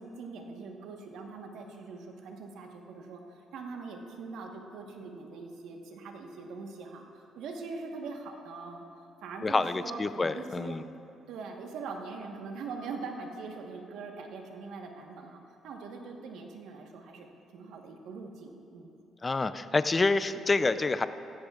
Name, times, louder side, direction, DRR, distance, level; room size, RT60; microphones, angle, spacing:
voice 1, 0.0-8.8 9.2-10.8 11.3-18.9, right 4 dB, 85° right, 2 dB, 1.2 m, -42 dB
voice 2, 9.4-10.8 19.2-21.1, left 3 dB, 25° left, 12 dB, 0.5 m, -27 dB
16.5 x 15.0 x 2.4 m, 2.7 s
cardioid pair, 90°, 0 cm